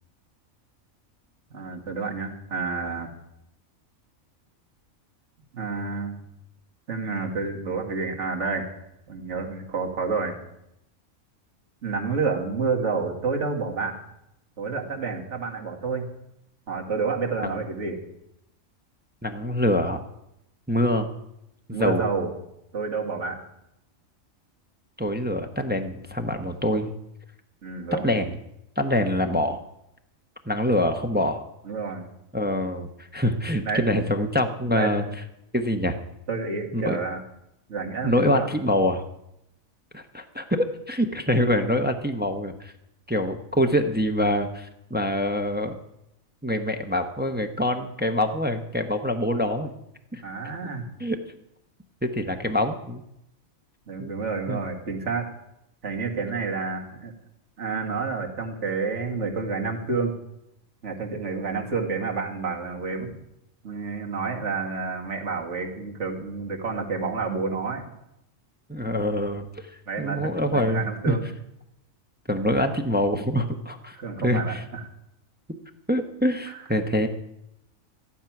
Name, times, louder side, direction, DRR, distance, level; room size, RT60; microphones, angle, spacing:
voice 1, 1.5-3.1 5.5-6.2 6.9-8.7 9.1-10.3 11.8-14.0 14.6-16.1 16.7-18.0 21.7-22.3 22.7-23.4 27.6-28.0 31.6-32.0 33.6-33.9 34.7-35.0 36.3-37.2 37.7-38.5 50.2-50.9 53.9-55.3 55.8-57.1 57.6-60.2 60.8-63.1 63.6-67.8 69.9-71.3 73.9-74.9 76.5-76.6, right 4 dB, 60° right, 1 dB, 2.1 m, -29 dB
voice 2, 19.2-20.0 20.7-21.1 21.7-22.1 25.0-26.9 28.0-28.3 28.8-29.6 30.5-31.4 32.3-35.0 35.5-36.0 36.7-37.0 38.0-39.0 39.9-42.7 43.1-45.8 46.4-49.7 50.1-50.2 50.6-50.7 51.0-51.2 52.0-53.0 54.0-54.1 54.5-54.6 68.7-69.5 70.0-71.2 72.3-74.6 75.9-77.1, left 1 dB, 10° right, 6 dB, 0.6 m, -25 dB
13.5 x 11.0 x 5.9 m, 0.81 s
omnidirectional pair, 1.4 m